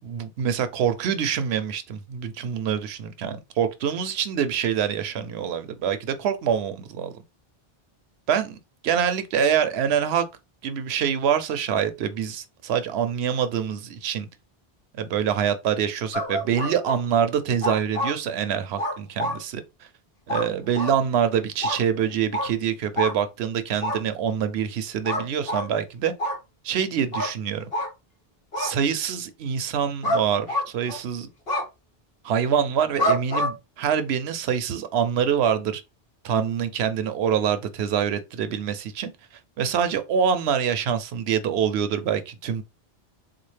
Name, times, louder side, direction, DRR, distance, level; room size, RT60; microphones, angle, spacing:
voice 1, 0.0-7.1 8.3-8.6 8.8-10.2 10.6-14.3 15.0-19.6 20.3-26.1 26.6-27.7 28.6-31.3 32.2-35.8 36.2-39.1 39.6-42.6, right 8 dB, 85° right, 0.8 m, -25 dB
sound 1, 16.1-17.0 17.6-18.1 18.8-19.4 20.3-20.5 20.7-21.0 21.6-21.8 22.3-22.5 23.0-23.1 23.8-24.0 25.1-25.7 26.2-26.4 27.1-27.3 27.7-27.9 28.5-28.7 30.0-30.2 30.5-31.0 31.5-31.6 33.0-33.5, equal, 70° left, 1.6 m, -26 dB
4.1 x 2.4 x 3.2 m
omnidirectional pair, 1.0 m